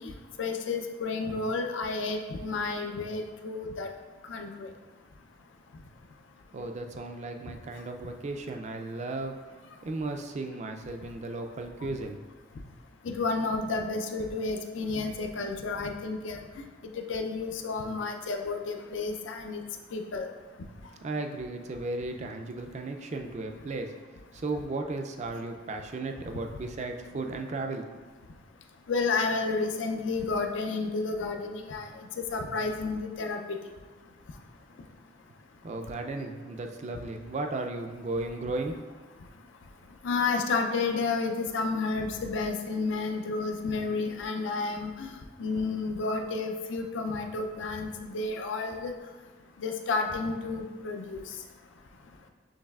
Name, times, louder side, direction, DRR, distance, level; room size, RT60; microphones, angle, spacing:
voice 1, 0.0-3.9 4.3-4.7 13.0-16.4 17.0-19.6 19.9-20.3 26.3-26.4 28.9-31.9 32.2-33.6 40.0-45.1 45.4-48.9 49.6-51.2, left 3 dB, 90° left, 4 dB, 0.4 m, -31 dB
voice 2, 6.5-9.4 9.8-12.2 21.0-23.9 24.3-27.9 35.6-38.8, right 2 dB, 35° right, 4 dB, 0.3 m, -35 dB
6.4 x 3.2 x 2.3 m, 1.3 s
head